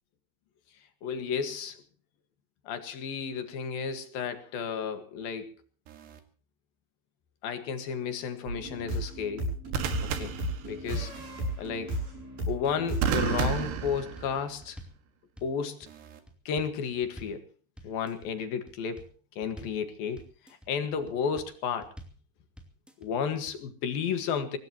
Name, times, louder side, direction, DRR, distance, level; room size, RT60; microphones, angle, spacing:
voice 1, 1.0-1.8 2.7-5.5 7.4-9.5 10.0-10.3 10.6-11.1 11.6-12.0 12.5-14.8 15.4-15.9 16.5-17.4 17.8-19.1 19.4-20.2 20.7-21.9 23.0-24.6, left 6 dB, 65° left, 9 dB, 3.3 m, -32 dB
sound 1, 5.9-6.2 9.7-11.2 13.0-14.7 15.9-16.2, right 7 dB, 85° right, 3.9 m, -32 dB
sound 2, 8.5-13.6, right 1 dB, 55° right, 9.8 m, -34 dB
sound 3, 13.9-14.3 14.6-15.0 15.4-15.9 16.3-16.7 17.0-17.4 17.8-18.3 18.7-19.1 19.4-19.8 20.2-20.7 21.1-21.5 21.8-22.2 22.6-23.1 23.5-23.6, right 1 dB, ahead, 1.3 m, -48 dB
24.5 x 18.5 x 3.0 m, 0.41 s
omnidirectional pair, 4.8 m